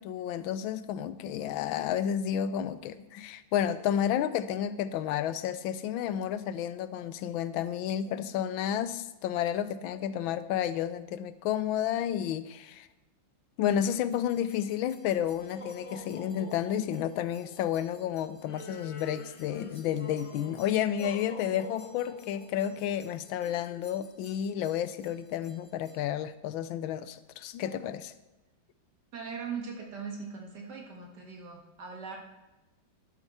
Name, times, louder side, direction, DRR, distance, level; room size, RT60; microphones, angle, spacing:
voice 1, 0.0-12.9 13.6-28.1, left 10 dB, 90° left, 14 dB, 1.4 m, -31 dB
sound 1, 14.1-26.0, left 2 dB, 35° left, 0.5 m, -49 dB
voice 2, 29.1-32.2, right 5 dB, 60° right, 0 dB, 2.2 m, -40 dB
11.5 x 8.0 x 4.2 m, 1.0 s
omnidirectional pair, 2.1 m